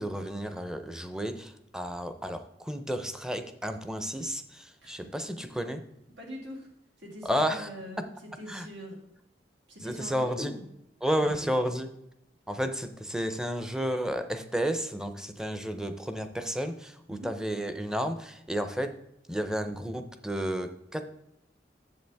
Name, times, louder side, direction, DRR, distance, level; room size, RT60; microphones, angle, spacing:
voice 1, 0.0-5.8 7.2-7.7 8.5-8.7 9.8-10.5 11.0-11.9 12.5-18.9 19.3-21.0, equal, 5° right, 8 dB, 0.6 m, -32 dB
voice 2, 6.2-6.7 7.0-8.0 8.4-9.0 9.7-10.6 11.2-11.5 17.1-17.3, equal, 85° right, 0 dB, 2.4 m, -42 dB
7.9 x 7.4 x 3.4 m, 0.81 s
head